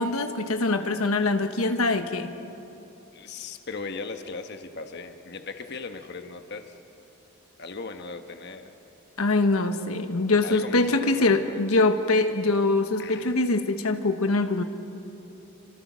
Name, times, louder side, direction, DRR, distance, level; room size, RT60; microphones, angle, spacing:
voice 1, 0.0-2.3 9.2-14.6, left 2 dB, 80° left, 7 dB, 1.3 m, -23 dB
voice 2, 3.1-6.7 7.6-8.7 10.4-11.8 13.0-13.3, left 4 dB, 50° left, 6 dB, 1.2 m, -38 dB
28.5 x 25.5 x 6.2 m, 2.9 s
head